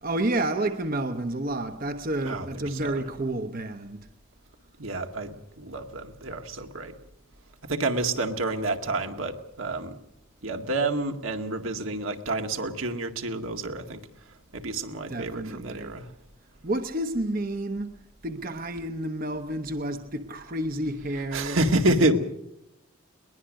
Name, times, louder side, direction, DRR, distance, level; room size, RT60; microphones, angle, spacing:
voice 1, 0.0-4.1 15.1-16.0 16.6-17.9 18.2-21.6 22.1-22.2, right 1 dB, 40° right, 1.0 m, -30 dB
voice 2, 4.8-6.9 7.7-10.0 10.4-14.0 14.5-16.1 21.3-22.2, right 2 dB, 75° right, 2.0 m, -28 dB
21.5 x 20.5 x 6.5 m
head